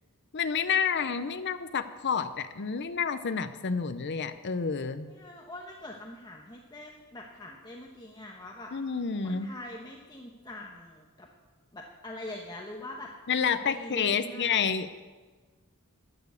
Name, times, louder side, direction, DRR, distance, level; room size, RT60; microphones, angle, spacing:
voice 1, 0.3-5.1 8.7-9.5 13.3-15.0, left 6 dB, 50° left, 10 dB, 0.6 m, -29 dB
voice 2, 5.1-8.7 9.2-11.3 11.7-13.1 13.4-14.6, left 1 dB, 20° left, 0 dB, 1.1 m, -43 dB
12.0 x 10.5 x 8.2 m, 1.4 s
head